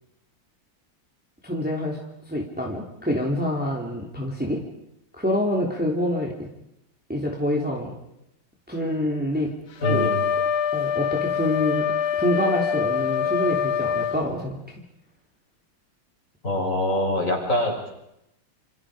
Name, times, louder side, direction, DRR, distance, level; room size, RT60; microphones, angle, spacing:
voice 1, 1.4-2.0 2.3-4.6 5.2-6.3 7.1-7.9 8.7-9.5 9.9-10.1 10.7-11.8 12.2-14.6, left 1 dB, 5° right, -1 dB, 3.1 m, -26 dB
Wind instrument woodwind instrument, 9.8-14.2, left 7 dB, 75° left, 2.1 m, -24 dB
voice 2, 9.8-10.3 16.4-17.9, left 1 dB, 35° left, 1 dB, 6.0 m, -24 dB
28.5 x 28.0 x 5.1 m, 0.84 s
omnidirectional pair, 2.3 m